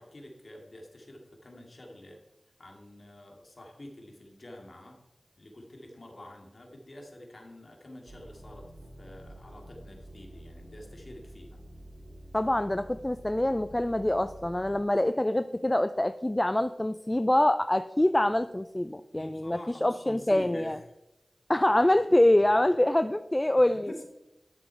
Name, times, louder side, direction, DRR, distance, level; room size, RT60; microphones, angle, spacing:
voice 1, 0.0-2.2 2.6-5.0 5.4-8.7 9.0-11.6 19.1-20.8 23.5-24.0, left 1 dB, 55° left, 1 dB, 2.2 m, -47 dB
sound 1, 8.1-14.7, right 1 dB, 85° right, 2.3 m, -48 dB
voice 2, 12.3-20.8 21.5-23.9, left 1 dB, 20° left, 11 dB, 0.4 m, -25 dB
11.5 x 6.2 x 4.6 m, 0.92 s
cardioid pair, 45°, 0 cm